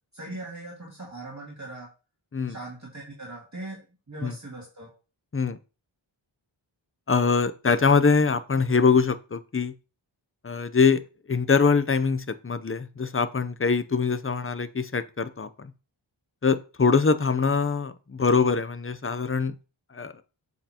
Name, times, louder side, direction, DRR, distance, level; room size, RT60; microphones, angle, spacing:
voice 1, 0.1-1.9 2.5-3.8 4.1-4.9, right 2 dB, 35° right, -3 dB, 2.3 m, -40 dB
voice 2, 7.1-9.7 10.4-11.0 11.3-15.7 16.4-19.5 19.9-20.2, left 5 dB, 25° left, 12 dB, 0.7 m, -23 dB
7.6 x 6.6 x 2.9 m, 0.33 s
wide cardioid pair, 40°, 48 cm